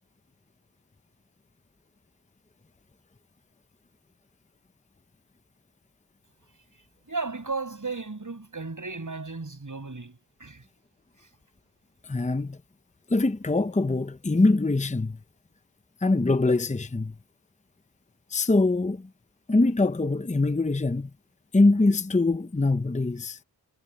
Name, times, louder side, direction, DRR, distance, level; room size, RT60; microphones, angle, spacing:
voice 1, 6.5-10.6 11.2-11.3, right 4 dB, 45° right, 6.9 m, -35 dB
voice 2, 12.0-12.6 13.1-15.2 16.0-17.1 18.3-19.1 19.5-21.1 21.5-23.4, left 2 dB, 15° left, 0.8 m, -23 dB
wide cardioid pair, 80°, 41 cm